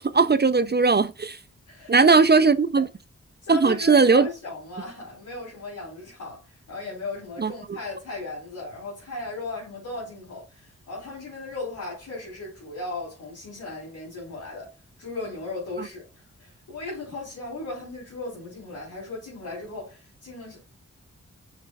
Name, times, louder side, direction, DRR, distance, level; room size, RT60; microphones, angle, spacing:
voice 1, 0.0-1.4 1.9-2.9 3.5-4.3 7.4-7.5, right 4 dB, 35° right, 0.6 m, -18 dB
voice 2, 1.7-2.5 2.7-2.9 3.4-14.7 15.0-20.6, left 2 dB, 85° left, 3.8 m, -36 dB
6.4 x 6.1 x 2.4 m
cardioid pair, 55°, 29 cm